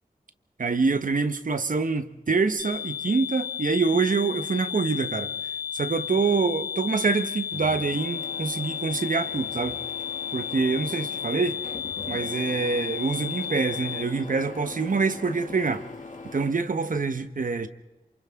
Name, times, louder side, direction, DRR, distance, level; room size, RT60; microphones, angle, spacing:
voice 1, 0.6-5.3 5.7-9.8 10.3-11.6 12.1-15.8 16.3-17.7, right 4 dB, 65° right, 1.3 m, -25 dB
sound 1, 2.6-14.0, left 9 dB, 80° left, 3.3 m, -33 dB
Printer, 7.5-16.5, left 3 dB, 55° left, 2.4 m, -42 dB
28.0 x 27.0 x 3.7 m
wide cardioid pair, 95°, 15 cm